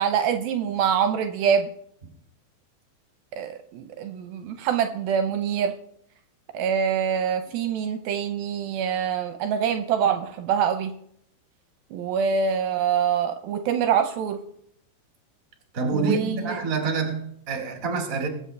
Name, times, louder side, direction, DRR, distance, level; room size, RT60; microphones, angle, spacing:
voice 1, 0.0-1.7 3.3-5.7 6.5-10.9 11.9-14.4 15.9-16.6, right 7 dB, 80° right, 2.4 m, -25 dB
voice 2, 15.7-18.3, right 4 dB, 30° right, 1.6 m, -27 dB
22.0 x 8.1 x 3.3 m
omnidirectional pair, 4.6 m